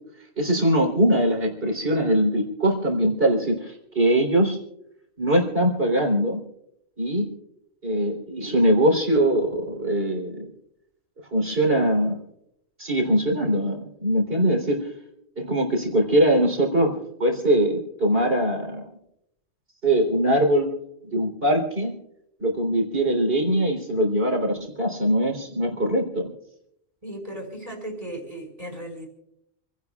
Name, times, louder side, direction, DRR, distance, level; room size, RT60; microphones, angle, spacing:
voice 1, 0.4-4.6 5.2-6.4 7.0-7.3 7.8-10.5 11.3-12.2 12.8-14.9 15.4-16.9 17.2-18.9 19.8-20.8 21.1-21.9 22.4-26.3, right 1 dB, 45° right, 3 dB, 4.0 m, -22 dB
voice 2, 27.0-29.1, right 1 dB, 30° right, 2 dB, 4.9 m, -36 dB
28.5 x 17.0 x 2.4 m, 0.79 s
omnidirectional pair, 1.3 m